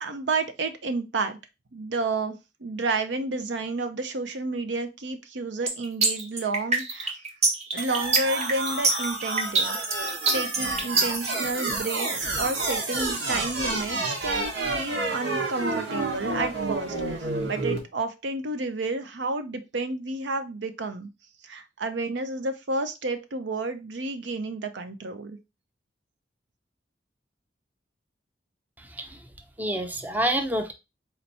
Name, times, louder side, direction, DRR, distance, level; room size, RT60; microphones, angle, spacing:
voice 1, 0.0-1.4 1.7-2.4 2.6-7.1 7.7-9.8 10.3-17.2 17.5-21.1 21.4-25.4, right 3 dB, 70° right, 8 dB, 0.6 m, -31 dB
sound 1, 5.7-11.3, right 3 dB, 40° right, 1.0 m, -23 dB
sound 2, 7.8-17.8, right 2 dB, 90° right, 1.5 m, -29 dB
voice 2, 28.8-29.2 29.6-30.7, right 1 dB, 10° right, 6 dB, 0.5 m, -28 dB
4.3 x 2.9 x 4.1 m, 0.25 s
head